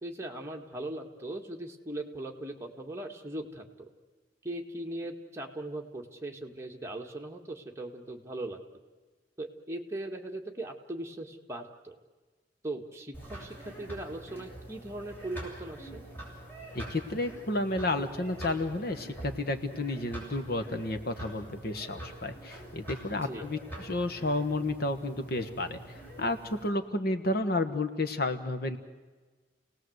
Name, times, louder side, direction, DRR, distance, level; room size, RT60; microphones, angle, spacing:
voice 1, 0.0-3.9 4.4-8.6 9.4-12.0 12.6-16.0 23.2-23.4, right 1 dB, 15° right, 1 dB, 1.9 m, -39 dB
sound 1, 13.1-26.7, right 1 dB, 10° left, 7.9 m, -45 dB
voice 2, 16.7-25.8 26.2-28.8, left 2 dB, 60° left, 9 dB, 1.4 m, -31 dB
29.5 x 18.5 x 8.0 m, 1.4 s
head